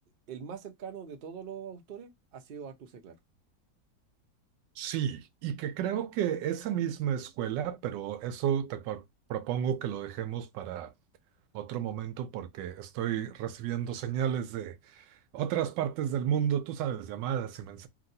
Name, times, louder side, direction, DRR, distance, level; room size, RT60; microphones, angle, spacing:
voice 1, 0.3-3.2, right 7 dB, 75° right, 0.5 m, -43 dB
voice 2, 4.8-9.0 9.3-10.9 11.5-15.0 15.3-17.9, right 9 dB, 90° right, 1.2 m, -32 dB
2.9 x 2.8 x 2.6 m
omnidirectional pair, 1.9 m